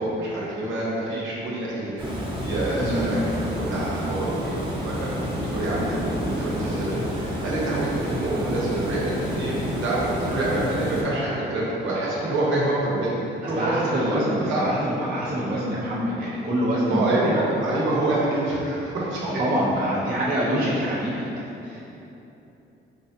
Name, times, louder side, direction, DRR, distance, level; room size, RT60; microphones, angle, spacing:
voice 1, 0.0-2.0 2.4-14.7 16.9-19.4, right 1 dB, 75° right, -7 dB, 0.9 m, -26 dB
Water, 2.0-11.0, equal, 25° right, 0.9 m, -30 dB
voice 2, 2.8-3.1 13.4-17.6 19.2-21.3 21.6-22.0, equal, 45° right, -7 dB, 0.6 m, -26 dB
4.6 x 2.3 x 2.6 m, 3.0 s
cardioid pair, 90°, 20 cm